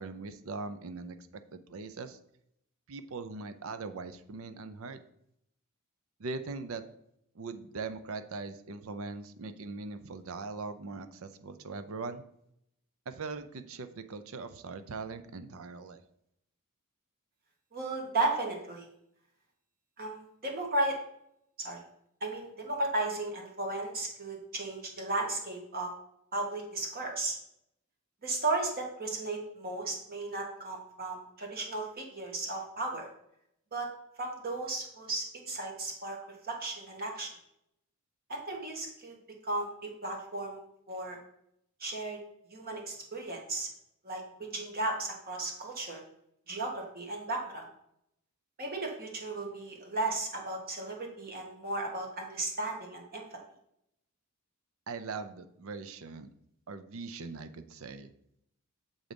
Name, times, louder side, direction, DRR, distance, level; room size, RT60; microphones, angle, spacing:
voice 1, 0.0-2.2 2.9-5.0 6.2-6.8 7.3-12.2 13.1-16.0 54.9-56.3 56.7-58.1, right 4 dB, 65° right, 10 dB, 0.5 m, -41 dB
voice 2, 17.7-18.9 20.0-20.9 21.6-21.8 22.2-25.9 26.3-27.4 28.2-33.1 33.7-33.9 34.2-36.2 36.4-37.3 38.3-39.1 39.4-40.6 40.9-41.2 41.8-42.2 42.5-43.7 44.0-46.0 46.5-47.6 48.6-53.2, right 2 dB, 45° right, 0 dB, 1.4 m, -35 dB
7.2 x 3.9 x 5.2 m, 0.76 s
head